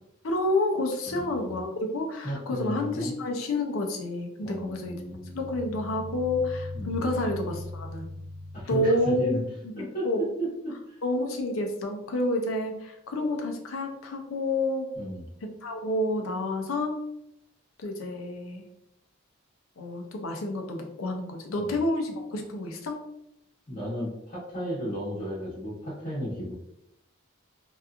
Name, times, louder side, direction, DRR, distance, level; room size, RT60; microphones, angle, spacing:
voice 1, 0.2-4.9 5.3-8.1 8.7-9.4 9.6-10.3 11.0-14.9 15.4-17.0 17.8-18.6 19.8-23.0, left 1 dB, 75° left, 3 dB, 0.5 m, -29 dB
voice 2, 2.2-3.1 4.4-5.5 6.7-7.0 8.5-9.4 9.7-11.0 14.9-15.2 21.6-21.7 23.7-26.5, equal, 40° left, -12 dB, 1.2 m, -34 dB
sound 1, 4.7-9.3, left 1 dB, 45° right, 0.7 m, -39 dB
2.9 x 2.3 x 2.3 m, 0.79 s
head